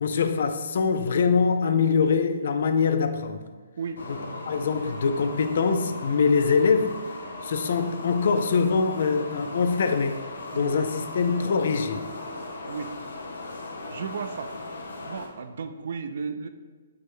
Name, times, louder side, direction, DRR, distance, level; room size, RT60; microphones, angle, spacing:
voice 1, 0.0-3.4 4.1-4.2 4.5-6.9 7.4-10.2 10.6-12.1, left 5 dB, 55° left, 0.3 m, -23 dB
sound 1, 4.0-15.3, left 2 dB, 85° left, 0.7 m, -38 dB
voice 2, 13.9-14.5 15.1-16.5, right 5 dB, 55° right, 0.3 m, -34 dB
4.8 x 2.1 x 4.5 m
hypercardioid pair, 165°, 0 cm